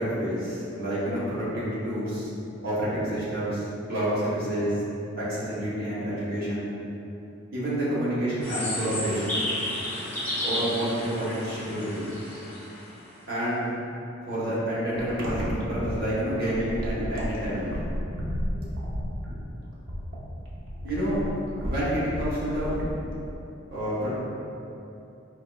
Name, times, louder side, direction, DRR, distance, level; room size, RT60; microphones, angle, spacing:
voice 1, 0.0-2.3 2.6-4.8 5.2-6.7 7.5-9.3 10.4-12.1 13.3-13.7 14.3-17.7 20.8-21.2 21.6-22.8 23.7-24.1, right 1 dB, 50° right, -9 dB, 1.0 m, -28 dB
sound 1, 8.4-13.0, left 1 dB, 10° left, 0.7 m, -32 dB
sound 2, 14.9-23.3, equal, 70° right, 0.6 m, -33 dB
4.5 x 2.9 x 2.2 m, 2.8 s
head